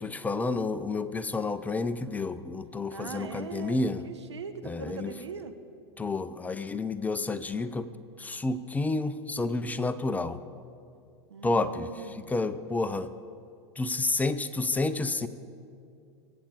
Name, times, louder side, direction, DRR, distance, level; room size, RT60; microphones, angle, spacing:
voice 1, 0.0-4.0 4.6-5.1 6.0-7.9 8.2-10.4 11.4-13.1 13.8-15.3, left 3 dB, 10° left, 12 dB, 0.5 m, -30 dB
voice 2, 2.9-5.5 11.3-12.5, right 6 dB, 85° right, 8 dB, 1.1 m, -41 dB
23.0 x 8.7 x 5.0 m, 2.4 s
hypercardioid pair, 100°, 14 cm